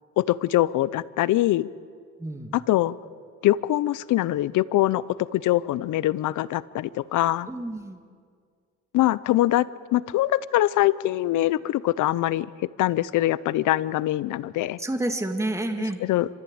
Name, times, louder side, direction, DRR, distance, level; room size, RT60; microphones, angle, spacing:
voice 1, 0.2-1.7 2.5-3.0 3.4-5.0 5.3-7.5 8.9-12.5 12.8-14.8 16.0-16.3, left 15 dB, 80° left, 19 dB, 0.7 m, -23 dB
voice 2, 2.2-2.5 7.5-8.0 14.8-16.0, right 1 dB, 10° right, 5 dB, 2.0 m, -29 dB
27.0 x 14.5 x 8.8 m, 2.1 s
cardioid pair, 90°, 30 cm